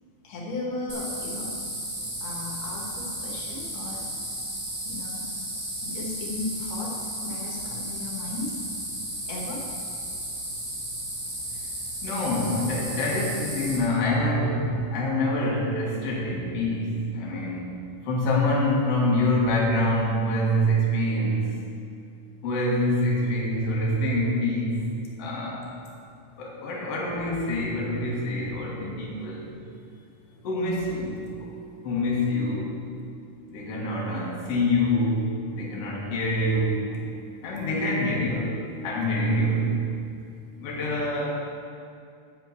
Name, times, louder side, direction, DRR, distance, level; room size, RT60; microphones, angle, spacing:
voice 1, 0.2-1.5 2.2-4.0 4.8-5.2 5.8-6.9 7.2-8.5 9.3-9.6 31.4-31.7 36.9-37.0, left 2 dB, 75° left, -3 dB, 3.0 m, -35 dB
sound 1, 0.9-13.8, right 1 dB, 25° right, 0.6 m, -34 dB
voice 2, 12.0-21.5 22.4-24.8 25.2-25.7 26.4-29.6 30.4-31.3 31.8-32.8 33.5-36.9 37.4-39.8 40.6-41.3, left 1 dB, 55° left, -4 dB, 2.2 m, -26 dB
7.6 x 6.3 x 7.9 m, 2.5 s
omnidirectional pair, 3.7 m